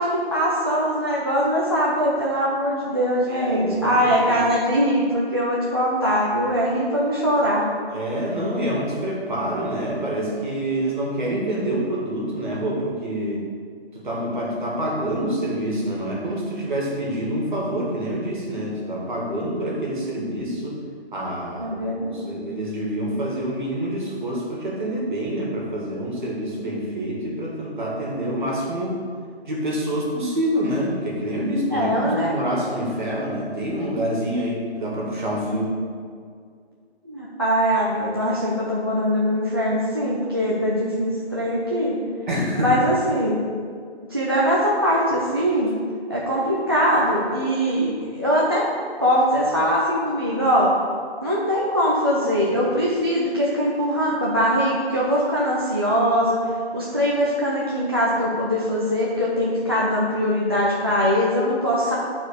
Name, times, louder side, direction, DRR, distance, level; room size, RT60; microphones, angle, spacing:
voice 1, 0.0-7.6 21.6-22.5 31.7-32.4 37.0-42.0 42.6-43.4 44.1-45.7 46.1-48.7 49.0-50.7 51.2-56.4 56.7-61.9, equal, 25° right, -7 dB, 0.5 m, -22 dB
voice 2, 3.3-4.5 7.9-13.5 13.9-20.8 21.1-29.0 29.5-35.7 42.3-42.7, right 1 dB, 50° right, -3 dB, 2.0 m, -27 dB
9.6 x 4.3 x 4.9 m, 2.1 s
hypercardioid pair, 175°, 32 cm